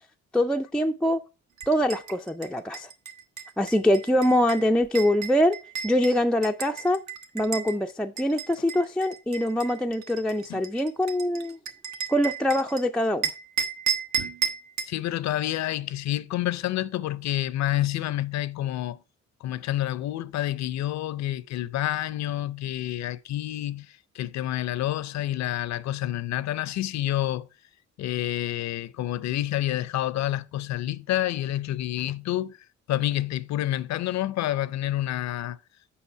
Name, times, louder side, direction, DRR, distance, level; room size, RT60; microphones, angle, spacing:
voice 1, 0.3-1.2 1.7-2.9 3.6-5.6 5.8-7.0 7.3-11.6 12.1-13.3, left 1 dB, 5° left, 0.3 m, -24 dB
sound 1, 1.6-7.7 8.2-12.8 13.2-15.0, right 7 dB, 65° right, 1.0 m, -33 dB
voice 2, 14.9-19.0 19.4-27.5 28.0-32.6 32.9-35.6, left 13 dB, 65° left, 0.5 m, -28 dB
7.1 x 5.3 x 4.4 m
cardioid pair, 90°, 30 cm